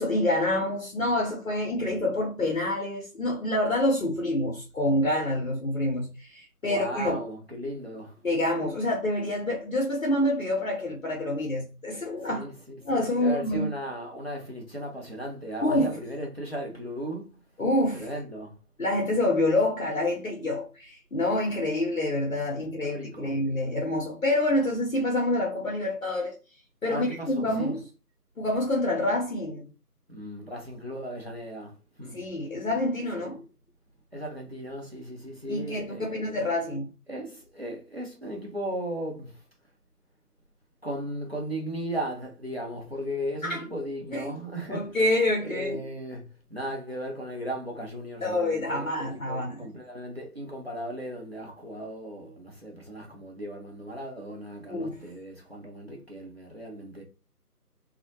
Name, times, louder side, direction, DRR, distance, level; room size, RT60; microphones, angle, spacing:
voice 1, 0.0-7.2 8.2-12.5 12.8-13.7 15.6-16.0 17.6-18.1 18.8-26.4 26.8-27.8 28.4-29.7 32.0-33.4 35.5-36.9 43.4-43.6 44.1-44.3 44.7-45.8 48.2-49.7 54.7-55.0, left 1 dB, 55° left, 0.7 m, -27 dB
voice 2, 6.6-8.1 12.3-17.4 17.9-18.5 22.8-23.3 26.9-27.7 30.1-31.7 32.0-32.2 33.2-33.3 34.1-36.4 37.1-39.4 40.8-44.9 45.4-57.0, right 1 dB, 40° right, 0.6 m, -36 dB
2.2 x 2.0 x 2.8 m
figure-of-eight pair, 165°, 48 cm